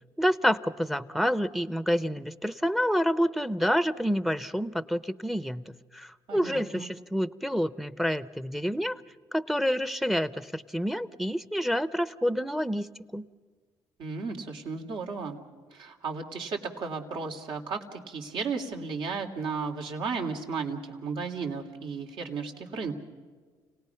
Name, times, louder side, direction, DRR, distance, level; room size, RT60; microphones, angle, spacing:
voice 1, 0.2-5.6 5.9-9.0 9.3-13.3, equal, ahead, 15 dB, 0.8 m, -28 dB
voice 2, 6.3-6.9 14.0-15.4 15.7-22.9, right 5 dB, 65° right, 3 dB, 2.9 m, -34 dB
30.0 x 18.5 x 5.8 m, 1.5 s
cardioid pair, 85°, 9 cm